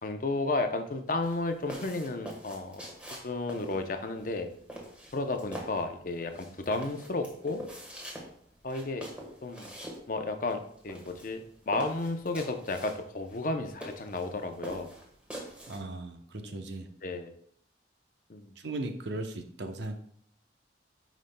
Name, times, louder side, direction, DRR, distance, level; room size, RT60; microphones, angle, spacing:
voice 1, 0.0-2.8 3.2-4.5 5.1-7.6 8.6-9.1 9.4-9.7 10.1-14.9 16.4-16.5 17.0-17.3 18.3-18.5, left 2 dB, 45° left, 6 dB, 0.6 m, -33 dB
sound 1, 1.1-15.8, equal, 5° right, 1.3 m, -45 dB
voice 2, 15.7-16.9 18.6-20.0, right 2 dB, 70° right, 6 dB, 0.8 m, -37 dB
9.3 x 5.1 x 2.2 m, 0.64 s
head